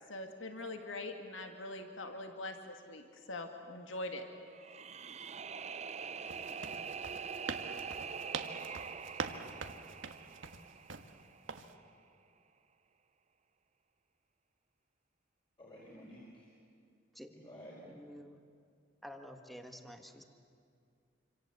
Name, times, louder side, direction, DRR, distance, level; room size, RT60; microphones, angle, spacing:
voice 1, 0.1-4.3, left 2 dB, 85° left, 5 dB, 2.1 m, -43 dB
sound 1, 4.5-11.6, right 6 dB, 35° right, 0.6 m, -44 dB
voice 2, 5.9-6.7 15.6-16.4 17.3-17.9, equal, 25° left, -5 dB, 4.7 m, -53 dB
sound 2, 6.3-11.1 11.5-11.7, right 4 dB, 85° right, 1.5 m, -43 dB
voice 3, 17.1-17.5 17.8-18.4 19.0-20.2, equal, ahead, 5 dB, 1.6 m, -50 dB
27.5 x 26.5 x 8.0 m, 2.2 s
head